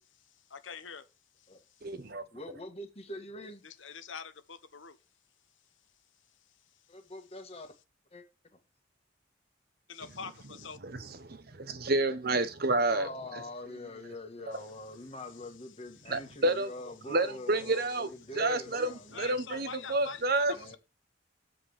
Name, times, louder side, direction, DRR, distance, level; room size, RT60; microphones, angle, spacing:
voice 1, 0.5-1.0 3.6-5.0 9.9-10.8 19.1-20.8, left 5 dB, 75° left, 1.1 m, -44 dB
voice 2, 1.8-2.2 10.8-13.4 14.5-14.6 16.1-16.7 17.1-18.1 18.4-18.9 19.2-20.5, right 2 dB, 50° right, 1.0 m, -29 dB
voice 3, 2.3-3.6 6.9-7.7 8.1-8.2 12.9-19.4 20.5-20.8, left 2 dB, 30° left, 1.8 m, -44 dB
7.8 x 5.2 x 6.6 m
head